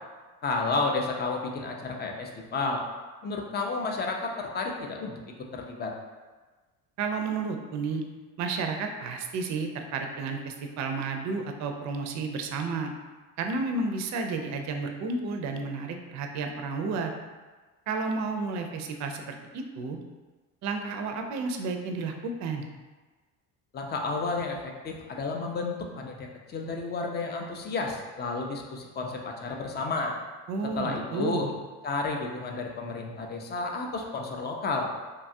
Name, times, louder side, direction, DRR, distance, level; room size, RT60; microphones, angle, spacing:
voice 1, 0.4-2.8 3.2-5.1 5.5-5.9 23.7-30.1 30.8-31.5 31.8-34.9, left 3 dB, 25° left, 1 dB, 0.3 m, -31 dB
voice 2, 7.0-8.0 8.4-12.9 13.4-17.1 17.9-20.0 20.6-22.6 30.5-31.5, right 4 dB, 45° right, 4 dB, 0.4 m, -31 dB
2.8 x 2.3 x 2.6 m, 1.3 s
supercardioid pair, 85°, 41 cm